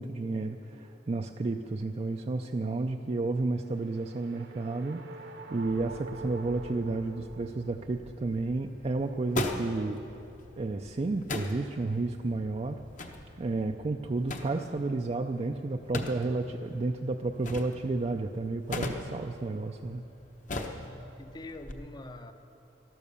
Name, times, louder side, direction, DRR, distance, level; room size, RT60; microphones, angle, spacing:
voice 1, 0.0-10.2 10.6-12.8 13.4-20.0, right 3 dB, 35° right, 4 dB, 0.4 m, -32 dB
sound 1, 3.6-7.9, right 2 dB, 65° right, 1.0 m, -45 dB
sound 2, 5.6-20.6, left 1 dB, 65° left, 1.2 m, -55 dB
sound 3, 7.6-21.7, left 2 dB, 45° left, 0.9 m, -40 dB
voice 2, 20.6-22.3, left 2 dB, 25° left, 8 dB, 0.6 m, -45 dB
12.5 x 12.0 x 6.9 m, 2.8 s
head